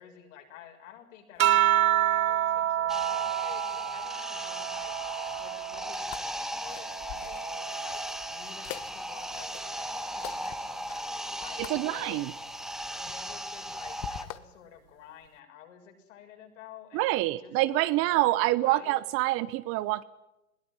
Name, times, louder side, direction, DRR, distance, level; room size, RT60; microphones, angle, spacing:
voice 1, 0.0-4.9 5.3-8.0 8.3-12.2 12.9-19.0, left 9 dB, 60° left, 3 dB, 6.4 m, -51 dB
sound 1, 1.4-6.2 6.7-8.4 9.6-10.1, right 12 dB, 80° right, 0.8 m, -29 dB
sound 2, 2.9-14.2, equal, ahead, 1.8 m, -37 dB
sound 3, 5.9-14.4, left 14 dB, 35° left, 1.2 m, -47 dB
voice 2, 11.6-12.3 16.9-20.0, right 17 dB, 35° right, 17 dB, 0.7 m, -26 dB
21.5 x 17.5 x 9.8 m, 0.94 s
hypercardioid pair, 110°, 42 cm